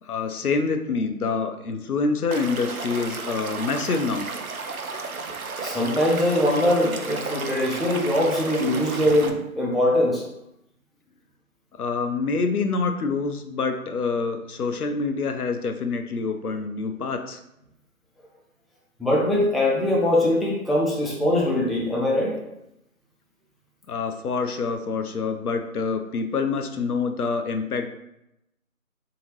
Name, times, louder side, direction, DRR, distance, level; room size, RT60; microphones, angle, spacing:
voice 1, 0.0-4.3 11.7-17.4 23.9-27.9, left 4 dB, 90° left, 7 dB, 0.6 m, -26 dB
Stream / Liquid, 2.3-9.3, right 4 dB, 75° right, 0.5 m, -33 dB
voice 2, 5.6-10.2 19.0-22.4, left 1 dB, ahead, -4 dB, 0.4 m, -22 dB
3.6 x 2.8 x 3.1 m, 0.85 s
figure-of-eight pair, 180°, 43 cm